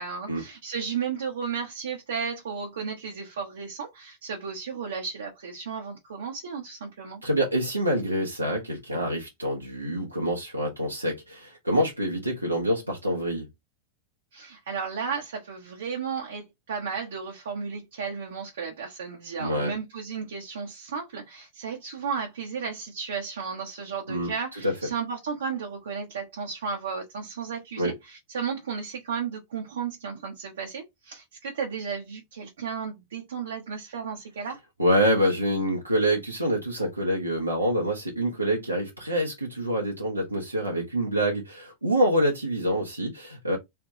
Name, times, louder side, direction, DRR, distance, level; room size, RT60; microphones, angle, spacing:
voice 1, 0.0-7.2 14.3-34.6, right 6 dB, 65° right, 1.0 m, -34 dB
voice 2, 7.2-13.5 19.4-19.7 24.1-24.7 27.8-27.9 34.8-43.6, equal, 85° right, 1.0 m, -26 dB
3.4 x 3.4 x 2.9 m
figure-of-eight pair, 90°, 0 cm